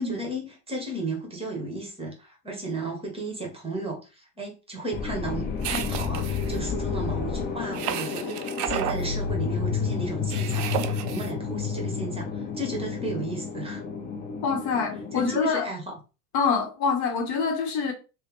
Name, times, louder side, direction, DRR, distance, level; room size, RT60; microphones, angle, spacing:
voice 1, 0.0-13.8 15.1-15.9, right 2 dB, 10° right, 1.0 m, -34 dB
sound 1, 4.9-15.4, left 5 dB, 25° left, 0.3 m, -30 dB
sound 2, 5.6-6.6 7.7-9.0 10.3-11.3, right 11 dB, 50° right, 0.4 m, -32 dB
voice 2, 14.4-15.7 16.3-17.9, left 5 dB, 55° left, 0.9 m, -25 dB
3.1 x 2.1 x 2.9 m
hypercardioid pair, 95°, 47 cm